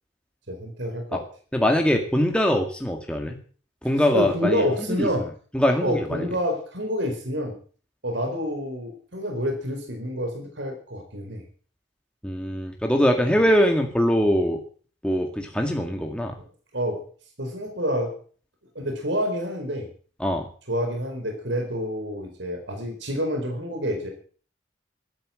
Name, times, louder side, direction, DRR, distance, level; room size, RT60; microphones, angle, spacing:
voice 1, 0.5-1.2 4.1-5.3 5.8-7.6 8.0-11.4 13.2-13.4 16.7-17.0 17.4-18.2 18.7-19.9 20.7-24.1, equal, 70° right, 3 dB, 4.7 m, -28 dB
voice 2, 1.5-3.4 3.8-5.1 5.5-6.3 12.2-14.6 15.0-16.4 20.2-20.5, equal, 5° left, 2 dB, 1.9 m, -22 dB
13.5 x 12.5 x 7.7 m, 0.43 s
head